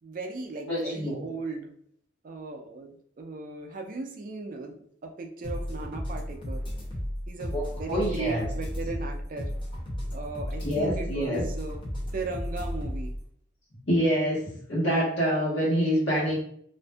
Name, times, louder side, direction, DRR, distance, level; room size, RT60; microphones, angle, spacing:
voice 1, 0.0-1.7 2.2-6.6 7.3-9.5 10.1-11.8 12.1-13.2 15.4-15.5, right 3 dB, 45° right, 4 dB, 0.3 m, -37 dB
voice 2, 0.7-1.2 7.5-8.5 10.6-11.4 13.9-14.4 14.7-16.3, equal, 70° left, -5 dB, 1.2 m, -26 dB
sound 1, 5.4-13.2, equal, 25° left, 0.7 m, -34 dB
2.5 x 2.5 x 2.2 m, 0.64 s
head